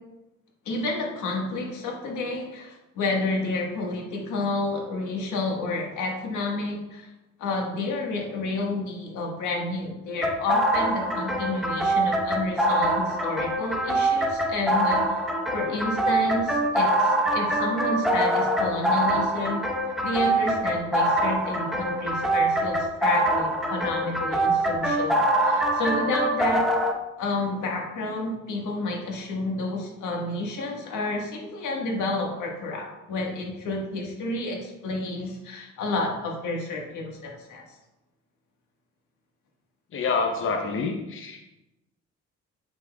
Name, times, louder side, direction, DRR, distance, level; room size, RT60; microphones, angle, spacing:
voice 1, 0.6-7.1 7.4-15.2 15.5-19.7 20.0-26.7 27.2-37.6, left 2 dB, 75° left, 0 dB, 1.5 m, -30 dB
sound 1, 10.2-26.9, right 1 dB, ahead, 0.9 m, -24 dB
voice 2, 39.9-41.5, left 4 dB, 45° left, 3 dB, 0.7 m, -27 dB
7.7 x 5.9 x 2.3 m, 0.96 s
cardioid pair, 90°, 30 cm